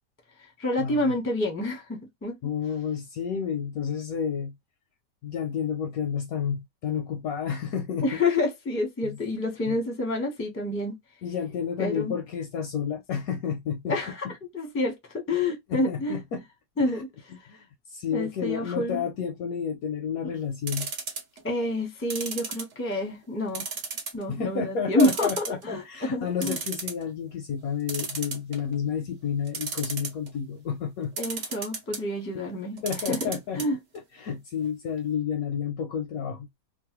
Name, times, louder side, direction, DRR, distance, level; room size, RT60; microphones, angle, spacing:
voice 1, 0.6-2.3 8.0-11.0 11.8-12.1 13.9-14.3 14.5-16.2 16.8-17.1 18.1-19.0 21.4-23.6 24.1-26.6 31.2-32.8 33.1-33.3 33.6-33.8, left 2 dB, 15° left, 0.6 m, -28 dB
voice 2, 2.4-4.5 5.2-8.1 9.0-9.2 9.7-9.8 11.2-14.0 15.7-16.4 16.9-17.0 17.3-20.9 24.3-31.1 32.3-32.4 32.8-33.6 34.1-36.5, left 7 dB, 70° left, 0.9 m, -31 dB
sound 1, 20.7-21.4 22.1-23.1 23.5-24.2 24.6-24.7 25.0-25.8 26.2-26.3 26.4-27.0 27.9-28.8 29.5-30.3 31.2-32.0 32.8-33.7 34.0-34.1 34.3-34.4, right 5 dB, 55° right, 0.9 m, -33 dB
3.0 x 2.1 x 2.9 m
omnidirectional pair, 1.9 m